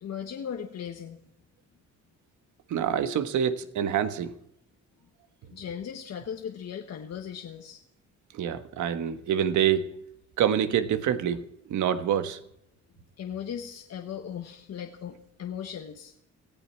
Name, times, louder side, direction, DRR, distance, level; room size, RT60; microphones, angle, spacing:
voice 1, 0.0-1.2 5.5-7.8 13.2-16.1, left 8 dB, 55° left, 1.4 m, -37 dB
voice 2, 2.7-4.3 8.3-9.8 10.4-11.4 11.7-12.4, right 9 dB, 75° right, 1.4 m, -26 dB
17.5 x 15.0 x 4.5 m
cardioid pair, 90°, 30 cm